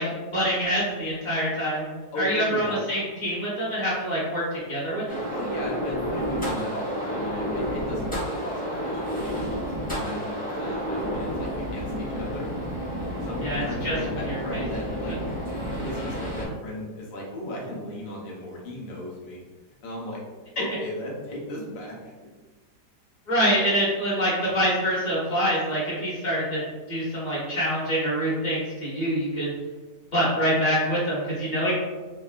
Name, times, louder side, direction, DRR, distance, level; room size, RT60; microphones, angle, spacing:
voice 1, 0.0-1.9 2.1-5.2 13.4-14.7 23.3-29.5 30.1-31.7, equal, 30° left, -8 dB, 1.0 m, -26 dB
voice 2, 2.1-2.8 5.3-12.5 13.2-15.2 15.8-19.4 19.8-20.2 20.6-22.1, left 1 dB, 85° left, -3 dB, 1.4 m, -36 dB
sound 1, 5.1-16.5, equal, 10° left, 0.5 m, -30 dB
3.7 x 2.2 x 2.4 m, 1.3 s
omnidirectional pair, 1.8 m